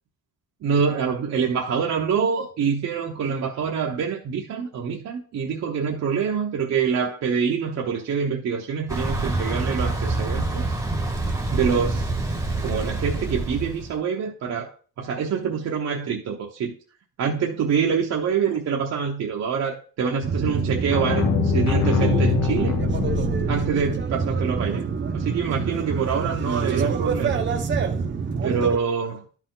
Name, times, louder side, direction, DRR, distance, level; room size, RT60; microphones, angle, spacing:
voice 1, 0.6-10.7 11.5-12.1 12.6-14.7 15.0-16.7 17.2-22.8 23.5-24.8 25.1-27.4 28.4-29.2, right 6 dB, 50° right, -1 dB, 1.1 m, -25 dB
Thunder / Bicycle, 8.9-13.9, right 2 dB, 10° right, 1.2 m, -26 dB
sound 1, 20.2-28.8, right 5 dB, 35° right, 0.9 m, -26 dB
sound 2, 20.9-24.0, left 7 dB, 55° left, 1.3 m, -24 dB
11.5 x 4.6 x 3.9 m, 0.40 s
cardioid pair, 155°, 33 cm